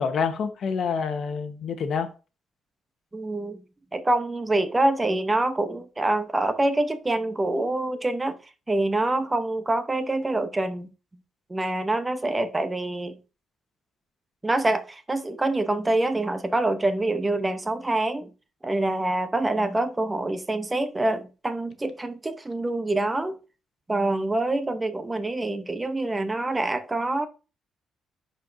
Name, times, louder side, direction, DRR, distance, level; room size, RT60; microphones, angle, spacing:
voice 1, 0.0-2.1, left 6 dB, 60° left, 1.1 m, -27 dB
voice 2, 3.1-3.6 3.9-8.4 8.7-10.9 11.5-13.2 14.4-18.3 18.6-23.4 23.9-27.3, right 2 dB, 20° right, 0.7 m, -26 dB
10.0 x 4.5 x 2.6 m
cardioid pair, 90°, 0 cm